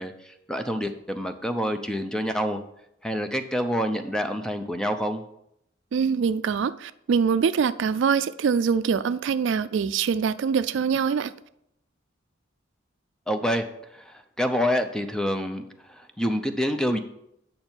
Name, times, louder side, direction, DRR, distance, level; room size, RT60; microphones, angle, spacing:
voice 1, 0.0-2.6 3.0-5.2 13.3-13.7 13.9-17.0, equal, 5° left, 0.5 m, -27 dB
voice 2, 5.9-11.3, right 6 dB, 70° right, 0.3 m, -24 dB
8.7 x 6.5 x 4.4 m
head